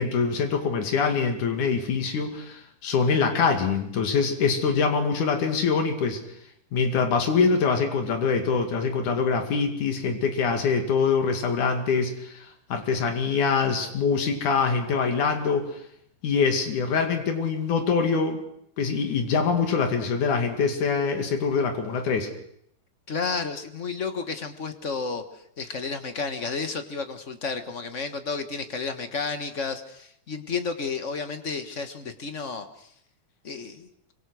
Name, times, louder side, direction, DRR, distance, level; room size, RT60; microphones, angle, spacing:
voice 1, 0.0-6.2 6.7-15.7 16.2-18.4 18.8-22.3, left 5 dB, 90° left, 5 dB, 3.8 m, -24 dB
voice 2, 23.1-32.9 33.4-33.9, left 4 dB, 40° left, 8 dB, 1.1 m, -32 dB
25.0 x 25.0 x 6.3 m, 0.71 s
omnidirectional pair, 3.4 m